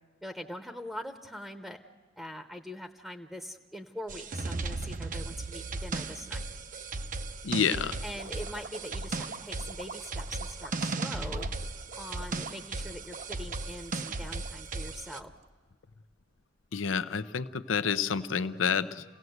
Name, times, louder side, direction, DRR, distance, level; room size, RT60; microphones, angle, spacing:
voice 1, 0.2-1.8 2.2-6.4 8.0-11.5 11.9-15.3, equal, ahead, 6 dB, 0.9 m, -42 dB
sound 1, 4.1-15.2, right 3 dB, 45° right, 0.8 m, -36 dB
voice 2, 7.4-8.0 16.7-19.0, left 6 dB, 85° left, 13 dB, 0.7 m, -29 dB
sound 2, 8.1-15.5, right 3 dB, 60° right, 1.3 m, -46 dB
29.0 x 17.5 x 7.9 m, 1.6 s
head